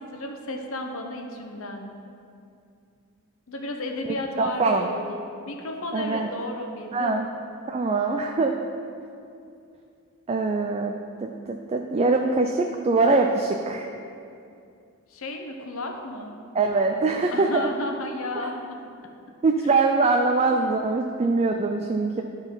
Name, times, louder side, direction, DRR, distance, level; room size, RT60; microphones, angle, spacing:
voice 1, 0.0-1.9 3.5-7.2 15.1-16.3 17.3-18.8 19.6-19.7, left 1 dB, 65° left, 3 dB, 0.9 m, -33 dB
voice 2, 4.4-4.9 5.9-6.3 6.9-7.3 7.7-8.5 10.3-10.9 11.2-13.9 16.5-17.6 18.4-18.5 19.4-22.2, right 3 dB, 30° right, 3 dB, 0.3 m, -23 dB
11.5 x 4.0 x 5.5 m, 2.5 s
head